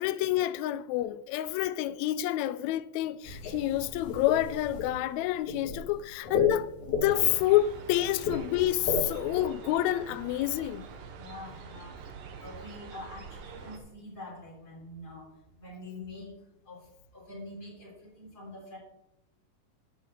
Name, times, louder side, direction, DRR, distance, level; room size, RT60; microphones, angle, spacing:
voice 1, 0.0-10.9, left 14 dB, 90° left, 1.6 m, -28 dB
sound 1, 3.2-9.5, left 3 dB, 60° left, 3.1 m, -34 dB
sound 2, 7.1-13.8, right 5 dB, 85° right, 2.8 m, -46 dB
voice 2, 11.2-12.0 12.4-15.3 15.6-16.3 16.7-16.9 17.1-18.8, left 2 dB, 30° left, 3.9 m, -45 dB
10.0 x 5.7 x 6.5 m
omnidirectional pair, 3.8 m